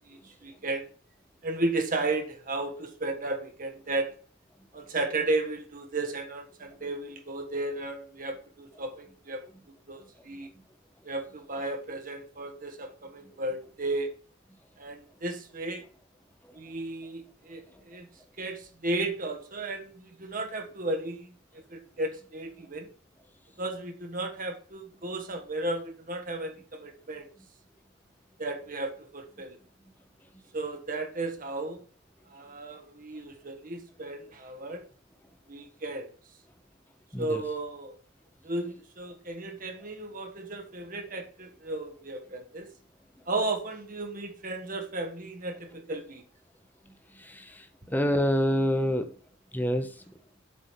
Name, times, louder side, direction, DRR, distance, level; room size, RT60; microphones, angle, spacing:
voice 1, 0.1-0.9 1.4-4.1 4.7-10.5 11.0-14.1 14.8-15.8 16.5-18.1 18.4-22.9 23.6-27.3 28.4-29.6 30.5-31.8 32.3-34.8 35.5-36.1 37.2-38.0 38.4-42.7 43.3-46.3, right 2 dB, 45° right, 1.4 m, -34 dB
voice 2, 47.2-47.6 47.9-49.1 49.5-49.9, equal, 10° left, 1.0 m, -26 dB
7.9 x 5.0 x 5.8 m
head